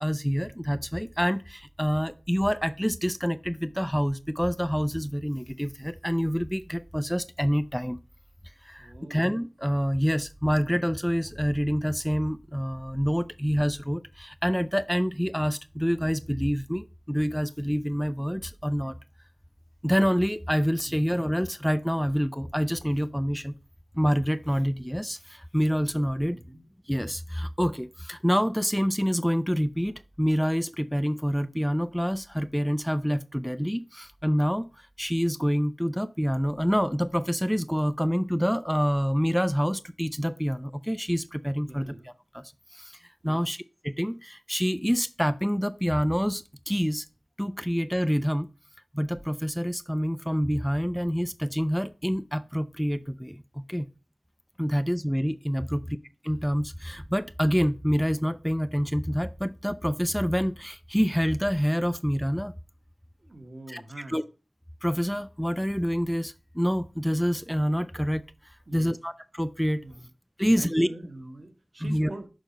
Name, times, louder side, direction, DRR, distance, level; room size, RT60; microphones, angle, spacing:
voice 1, 0.0-8.0 8.7-18.9 19.8-23.5 24.0-26.4 26.9-34.7 35.0-41.9 43.2-47.0 47.4-48.5 48.9-53.9 54.6-55.8 56.2-62.5 63.7-64.2 64.8-68.2 68.7-69.8 70.4-70.9 71.8-72.1, equal, ahead, 0.3 m, -27 dB
voice 2, 8.8-9.3 20.9-21.3 26.3-26.6 41.7-42.1 43.2-43.4 55.9-56.0 63.2-64.2 68.7-69.0 69.8-70.1 70.4-72.3, right 2 dB, 60° right, 1.3 m, -44 dB
6.5 x 4.0 x 5.2 m
wide cardioid pair, 50°, 0 cm